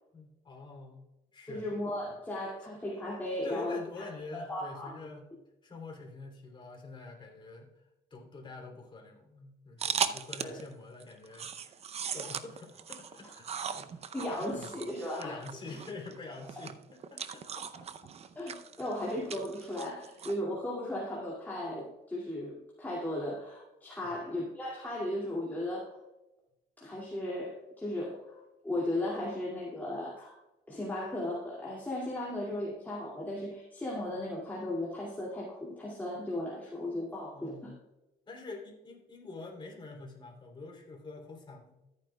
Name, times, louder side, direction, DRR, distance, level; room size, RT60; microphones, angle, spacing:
voice 1, 0.1-1.1 1.3-1.6 3.4-5.3 5.6-7.8 8.1-11.8 12.1-14.2 14.6-14.8 15.2-17.9 24.0-24.2 37.3-37.8 38.3-41.8, left 3 dB, 30° left, 0 dB, 3.1 m, -46 dB
voice 2, 1.5-4.1 4.3-4.9 10.4-10.6 14.1-15.4 17.5-17.6 18.4-25.9 26.8-30.4 30.7-37.7, left 1 dB, 10° left, -5 dB, 2.4 m, -36 dB
sound 1, 9.8-10.7 11.0-20.3, right 7 dB, 40° right, 0.6 m, -38 dB
14.0 x 9.2 x 2.3 m, 0.98 s
cardioid pair, 110°, 17 cm